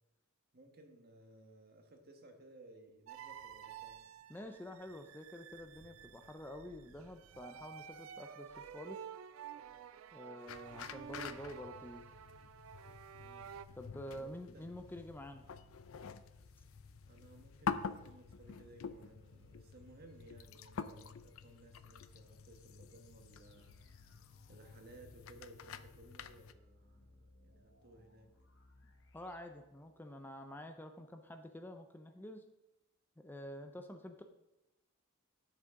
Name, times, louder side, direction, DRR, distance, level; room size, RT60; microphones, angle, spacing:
voice 1, 0.5-4.0 13.2-13.5 14.1-14.7 17.0-23.8 24.5-28.3, right 1 dB, 50° right, 4 dB, 1.3 m, -59 dB
sound 1, 3.1-13.7, right 8 dB, 75° right, 0.4 m, -51 dB
voice 2, 4.3-9.1 10.1-12.1 13.8-15.4 29.1-32.4 33.2-34.2, left 1 dB, 10° left, 6 dB, 0.5 m, -48 dB
sound 2, 10.5-26.5, left 6 dB, 80° left, 0.5 m, -47 dB
sound 3, 14.7-30.3, left 1 dB, 65° left, 1.3 m, -67 dB
11.0 x 6.7 x 3.7 m, 0.94 s
head